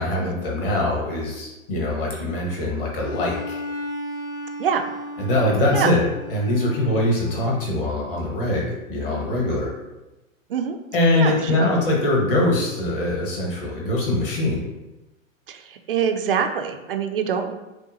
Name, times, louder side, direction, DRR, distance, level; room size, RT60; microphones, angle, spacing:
voice 1, 0.0-3.6 5.2-6.0 6.3-9.7 10.9-14.7, left 1 dB, 40° left, -2 dB, 1.4 m, -22 dB
Bowed string instrument, 3.0-7.7, left 1 dB, 15° left, 0.4 m, -35 dB
voice 2, 4.6-4.9 5.7-6.0 10.5-10.8 11.2-11.7 15.5-17.5, right 7 dB, 45° right, 6 dB, 0.4 m, -25 dB
6.6 x 2.2 x 2.7 m, 1.0 s
figure-of-eight pair, 110°, 41 cm